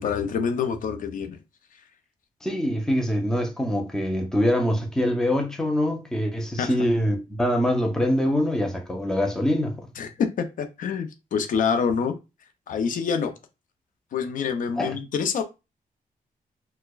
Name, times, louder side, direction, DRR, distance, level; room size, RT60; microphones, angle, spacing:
voice 1, 0.0-1.4 6.6-6.8 10.0-12.2 12.7-13.3 14.1-15.4, left 6 dB, 65° left, 0.6 m, -26 dB
voice 2, 2.4-9.9 14.8-15.0, equal, 5° left, 0.6 m, -24 dB
4.4 x 2.1 x 2.3 m
cardioid pair, 130°, 15 cm